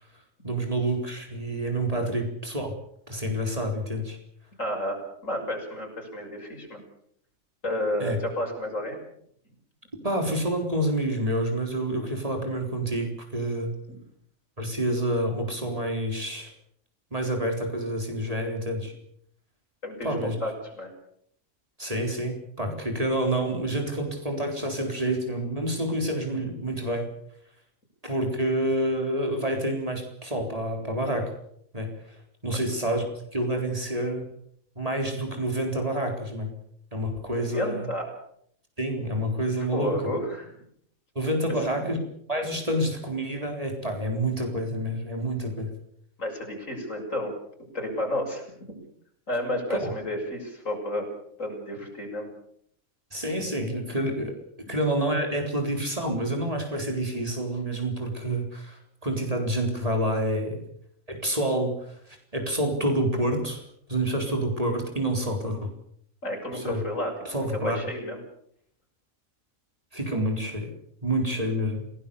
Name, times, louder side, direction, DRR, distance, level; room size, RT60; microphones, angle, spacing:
voice 1, 0.4-2.7 3.1-4.2 8.0-8.2 10.0-13.7 14.6-16.5 17.1-18.9 20.0-20.4 21.8-27.1 28.0-31.3 31.7-31.9 32.4-33.0 33.3-34.3 34.8-36.5 36.9-37.9 38.8-40.0 41.2-42.0 42.3-45.7 49.7-49.9 53.1-54.4 54.7-60.6 61.1-62.0 62.3-63.6 63.9-65.7 66.5-66.8 67.3-67.8 69.9-70.7 71.0-71.8, right 1 dB, 25° right, 3 dB, 4.2 m, -28 dB
voice 2, 4.6-6.8 7.6-9.0 13.9-14.0 19.8-20.9 32.5-32.6 37.3-38.0 39.6-40.6 41.5-41.6 41.8-41.9 46.2-47.3 47.7-48.8 49.3-51.1 51.4-52.3 54.7-54.8 66.2-68.2, left 1 dB, 70° left, 2 dB, 7.1 m, -31 dB
27.5 x 18.5 x 7.0 m, 0.69 s
omnidirectional pair, 1.4 m